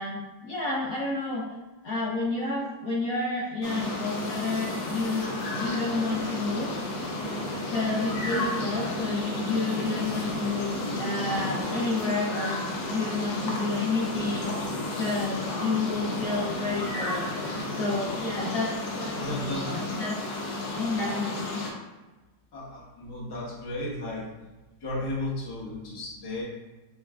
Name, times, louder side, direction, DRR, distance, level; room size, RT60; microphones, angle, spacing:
voice 1, 0.0-1.4 1.8-6.7 7.7-14.5 14.9-17.2 17.8-20.2 20.7-21.6, left 3 dB, 65° left, -5 dB, 0.9 m, -30 dB
sound 1, 3.6-21.7, left 1 dB, 80° left, 1.5 m, -32 dB
voice 2, 19.2-19.7 22.5-24.3 24.8-26.4, left 1 dB, 25° left, -6 dB, 0.5 m, -34 dB
6.2 x 2.2 x 2.4 m, 1.1 s
omnidirectional pair, 2.0 m